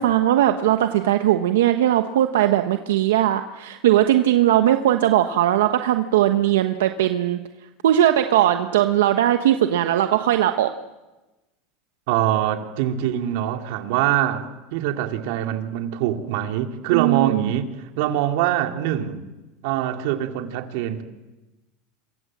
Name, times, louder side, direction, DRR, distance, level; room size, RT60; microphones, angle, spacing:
voice 1, 0.0-7.4 7.8-10.7 16.9-17.5, right 12 dB, 90° right, 7 dB, 1.2 m, -19 dB
voice 2, 12.1-17.7 18.0-19.2 19.6-21.0, right 12 dB, 70° right, 5 dB, 2.6 m, -24 dB
27.5 x 22.5 x 7.5 m, 1.1 s
supercardioid pair, 125°, 0 cm